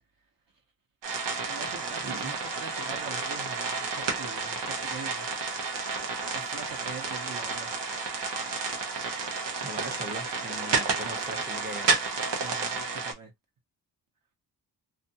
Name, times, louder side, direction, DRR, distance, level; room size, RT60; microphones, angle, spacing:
sound 1, 1.0-13.1, right 4 dB, 90° right, 0.8 m, -31 dB
voice 1, 1.4-5.3 6.3-7.7 12.4-13.3, right 4 dB, 50° right, 0.9 m, -43 dB
voice 2, 2.0-2.4 9.6-11.9, right 1 dB, 25° right, 0.8 m, -39 dB
2.4 x 2.3 x 2.7 m
cardioid pair, 70°, 41 cm